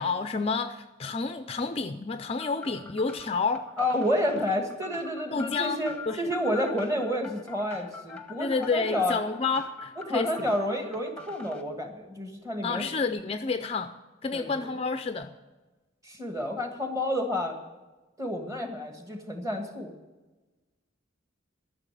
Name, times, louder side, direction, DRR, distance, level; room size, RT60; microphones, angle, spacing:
voice 1, 0.0-3.7 5.3-6.3 8.4-10.3 12.6-13.9 14.2-15.3, left 4 dB, 30° left, 0.4 m, -30 dB
sound 1, 2.4-11.6, left 3 dB, 5° left, 0.9 m, -44 dB
voice 2, 3.8-9.2 10.1-12.9 14.3-14.6 16.0-17.5 18.2-19.9, left 1 dB, 15° right, 1.7 m, -30 dB
13.0 x 6.6 x 9.1 m
head